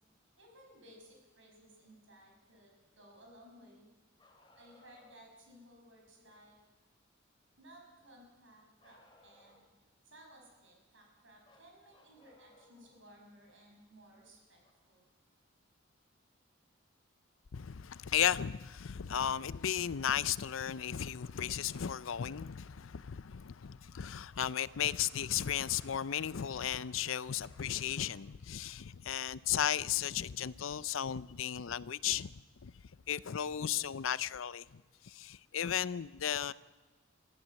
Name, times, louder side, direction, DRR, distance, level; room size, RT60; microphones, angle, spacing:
voice 1, 0.4-3.9 4.5-6.6 7.6-9.7 10.0-14.6 14.8-15.0, equal, 70° right, 5.9 m, -59 dB
Bark, 4.2-5.3 8.8-9.8 11.4-13.0 14.6-14.7 16.6-16.7 17.8-17.9, left 1 dB, 25° left, 2.6 m, -64 dB
voice 2, 17.5-32.3 32.6-32.7 33.1-36.5, left 9 dB, 80° left, 0.5 m, -35 dB
23.5 x 14.5 x 7.7 m
head